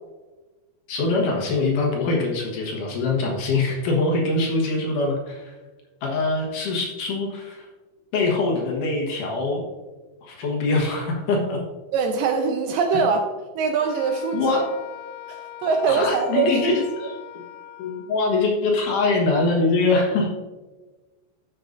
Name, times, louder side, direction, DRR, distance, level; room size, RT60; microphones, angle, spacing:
voice 1, 0.9-5.6 6.0-7.7 8.1-9.6 10.2-11.6 12.9-13.0 14.3-14.6 15.9-17.1 17.8-20.3, left 3 dB, 60° left, -1 dB, 2.6 m, -23 dB
voice 2, 11.9-13.2 13.6-14.4 15.3-16.8, right 5 dB, 80° right, 4 dB, 2.1 m, -22 dB
Wind instrument woodwind instrument, 13.8-18.2, left 12 dB, 80° left, 2.0 m, -40 dB
12.5 x 6.5 x 2.6 m, 1.2 s
omnidirectional pair, 4.5 m